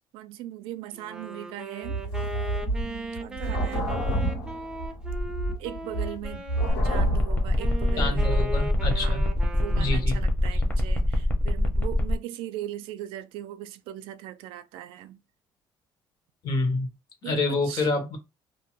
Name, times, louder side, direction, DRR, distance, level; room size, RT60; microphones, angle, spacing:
voice 1, 0.1-2.0 2.6-4.2 5.6-6.4 6.8-9.2 9.6-15.2 17.2-17.9, right 13 dB, 90° right, 0.4 m, -39 dB
Wind instrument woodwind instrument, 0.9-7.1 7.6-10.2, right 1 dB, 10° right, 0.5 m, -38 dB
sound 1, 1.8-9.3 9.7-9.9, right 2 dB, 85° left, 1.5 m, -30 dB
sound 2, 6.7-12.1, left 1 dB, 20° left, 0.8 m, -26 dB
voice 2, 8.0-9.2 9.7-10.2 10.5-10.6 16.4-16.9 17.2-18.2, left 3 dB, 50° left, 1.1 m, -27 dB
2.7 x 2.2 x 3.1 m
cardioid pair, 120°, 9 cm